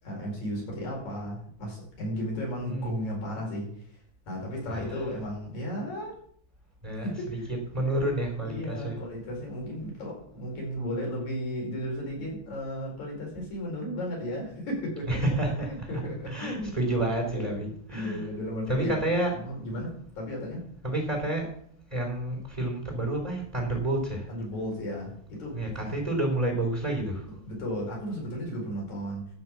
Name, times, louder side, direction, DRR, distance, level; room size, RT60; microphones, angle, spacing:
voice 1, 0.0-6.1 6.9-7.5 8.4-16.9 17.3-19.0 19.4-20.7 24.3-26.0 27.5-29.3, equal, 75° left, -1 dB, 6.0 m, -35 dB
voice 2, 6.8-8.9 15.1-15.7 16.3-18.3 18.7-19.3 19.7-19.8 20.8-21.5 21.9-24.3 25.5-27.4, right 1 dB, 15° right, 0 dB, 2.6 m, -29 dB
13.5 x 5.9 x 7.1 m, 0.65 s
omnidirectional pair, 3.3 m